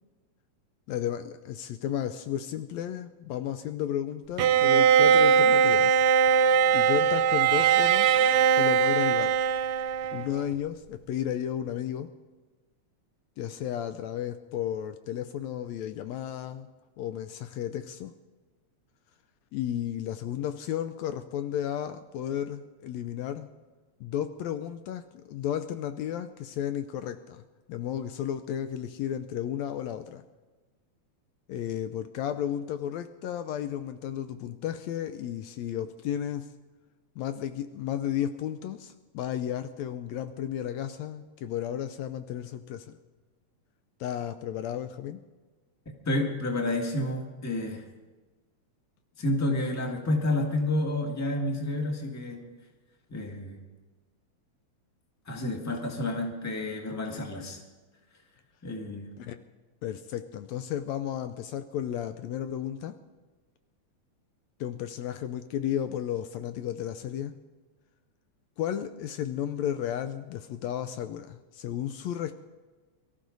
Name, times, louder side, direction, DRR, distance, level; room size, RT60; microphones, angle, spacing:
voice 1, 0.9-6.0 6.7-8.3 8.6-9.3 10.1-12.1 13.4-16.7 17.0-18.1 19.5-23.5 24.0-27.4 27.7-30.2 31.5-36.5 37.2-43.0 44.0-45.2 59.2-59.4 59.8-63.0 64.6-67.3 68.6-72.3, left 10 dB, 75° left, 10 dB, 1.8 m, -33 dB
Bowed string instrument, 4.4-10.4, right 7 dB, 75° right, 1.8 m, -21 dB
voice 2, 46.0-47.8 49.2-52.4 53.1-53.6 55.3-57.6 58.6-59.1, left 1 dB, 10° left, 1 dB, 1.2 m, -30 dB
23.0 x 14.0 x 4.0 m, 1.3 s
omnidirectional pair, 3.3 m